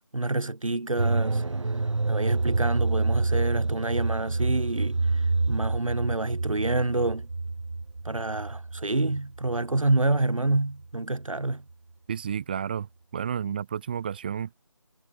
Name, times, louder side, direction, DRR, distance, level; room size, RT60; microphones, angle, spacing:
voice 1, 0.1-1.4 2.1-5.2 5.5-7.3 8.0-11.6, right 2 dB, 80° right, 7.5 m, -27 dB
sound 1, 1.0-10.9 11.1-11.2, right 3 dB, 65° right, 2.1 m, -28 dB
voice 2, 12.1-12.9 13.1-14.5, right 8 dB, 20° right, 4.8 m, -31 dB
figure-of-eight pair, 175°, 17 cm